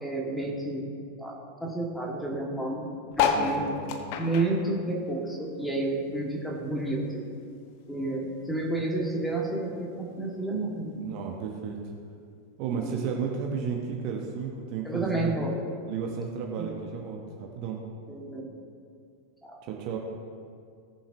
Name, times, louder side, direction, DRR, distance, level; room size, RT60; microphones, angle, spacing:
voice 1, 0.0-0.8 1.2-1.3 1.6-2.8 3.2-3.7 4.2-7.2 7.9-11.0 12.7-12.9 14.8-15.5 16.6-16.7 18.1-18.5 19.4-19.5, right 2 dB, 5° left, -2 dB, 2.1 m, -30 dB
sound 1, 3.1-5.9 6.2-7.7 8.2-8.3 8.5-8.6 8.8-9.2 10.0-10.1, left 6 dB, 45° left, 1.0 m, -30 dB
voice 2, 3.3-4.0 11.0-11.8 12.6-15.4 15.9-17.8 19.6-20.0, right 6 dB, 45° right, 1 dB, 1.1 m, -33 dB
18.0 x 7.1 x 3.0 m, 2.3 s
figure-of-eight pair, 90°, 0 cm